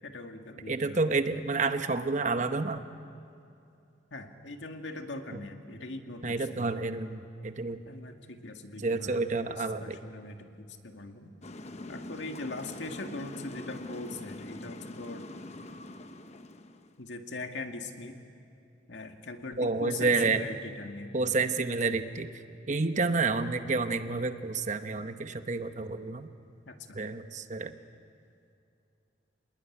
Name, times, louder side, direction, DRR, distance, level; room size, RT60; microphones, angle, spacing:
voice 1, 0.0-1.0 4.1-6.7 7.9-11.3 11.9-15.2 17.0-18.2 18.9-21.1 26.7-27.0, left 2 dB, 90° left, 5 dB, 2.0 m, -41 dB
voice 2, 0.7-2.8 5.3-5.4 6.2-7.8 8.8-10.0 19.6-20.4 21.1-22.3 22.7-26.3 26.9-27.7, right 3 dB, 40° right, 9 dB, 1.0 m, -29 dB
sound 1, 11.4-17.0, left 2 dB, 40° left, 1.0 m, -43 dB
26.5 x 19.5 x 9.8 m, 2.6 s
head